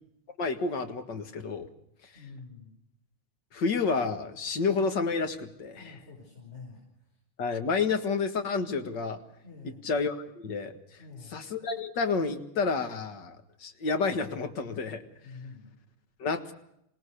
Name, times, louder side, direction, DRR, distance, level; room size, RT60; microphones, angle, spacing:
voice 1, 0.4-1.7 3.5-6.0 7.4-9.2 9.6-10.7 11.3-15.0 16.2-16.5, left 4 dB, 55° left, 7 dB, 2.4 m, -30 dB
voice 2, 2.1-2.7 5.7-7.2 9.4-9.8 11.0-11.4 15.2-15.7, left 4 dB, 30° left, -3 dB, 6.1 m, -47 dB
26.5 x 18.0 x 6.7 m, 0.78 s
omnidirectional pair, 2.4 m